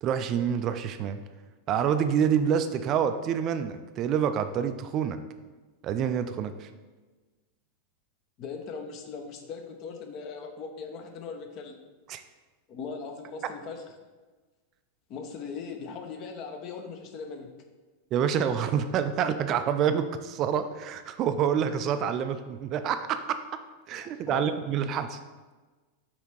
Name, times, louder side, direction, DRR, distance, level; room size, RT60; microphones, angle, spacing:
voice 1, 0.0-1.2 1.7-5.2 5.8-6.7 12.1-12.2 18.1-23.2 23.9-25.2, right 8 dB, 35° right, 9 dB, 0.4 m, -27 dB
voice 2, 8.4-11.8 12.7-13.8 15.1-17.5 24.0-24.5, left 5 dB, 40° left, 4 dB, 0.8 m, -39 dB
5.7 x 4.2 x 4.5 m, 1.3 s
figure-of-eight pair, 90°, 0 cm